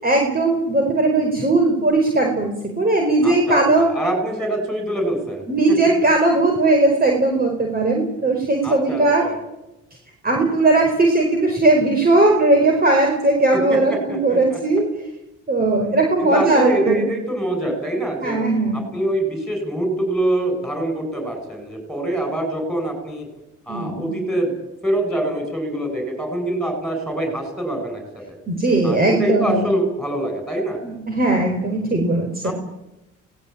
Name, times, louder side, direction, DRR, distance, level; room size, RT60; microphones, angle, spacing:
voice 1, 0.0-2.5 2.8-3.9 5.5-9.2 10.2-14.8 15.5-17.0 18.2-18.8 23.7-24.2 28.5-29.7 30.8-32.5, right 2 dB, 30° right, 1 dB, 5.1 m, -18 dB
voice 2, 3.2-6.0 8.6-9.4 13.5-14.6 16.2-18.4 18.7-23.3 23.7-24.5 24.8-28.0 28.8-30.8 32.4-32.5, right 1 dB, ahead, 5 dB, 8.0 m, -24 dB
24.0 x 19.0 x 8.9 m, 0.93 s
cardioid pair, 90°, 31 cm